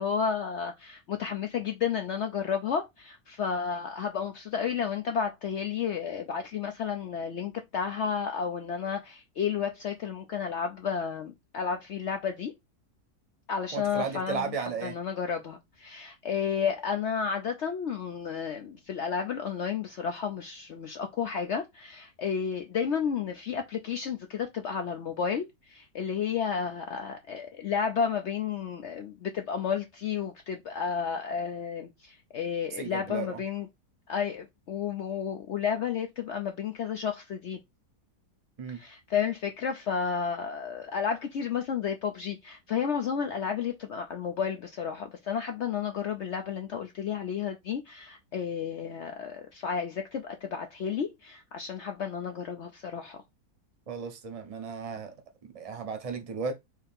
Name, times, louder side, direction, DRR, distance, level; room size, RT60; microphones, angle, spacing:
voice 1, 0.0-12.5 13.5-33.7 34.1-37.6 38.7-53.2, left 7 dB, 65° left, 0.7 m, -32 dB
voice 2, 13.7-14.9 32.8-33.4 38.6-38.8 53.9-55.1 55.4-56.5, right 5 dB, 30° right, 0.7 m, -35 dB
4.7 x 2.8 x 3.5 m
omnidirectional pair, 1.7 m